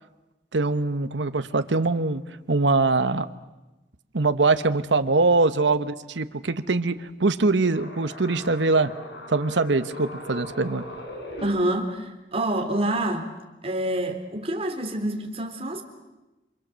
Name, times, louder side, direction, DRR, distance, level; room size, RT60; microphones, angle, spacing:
voice 1, 0.5-2.2 2.5-3.3 4.1-8.9 9.3-10.8, right 3 dB, 90° right, 11 dB, 1.1 m, -23 dB
sound 1, 7.6-11.5, equal, 70° left, 6.0 m, -39 dB
voice 2, 11.4-13.3 13.6-15.8, right 1 dB, 35° right, 5 dB, 3.5 m, -27 dB
28.0 x 26.5 x 7.6 m, 1.0 s
head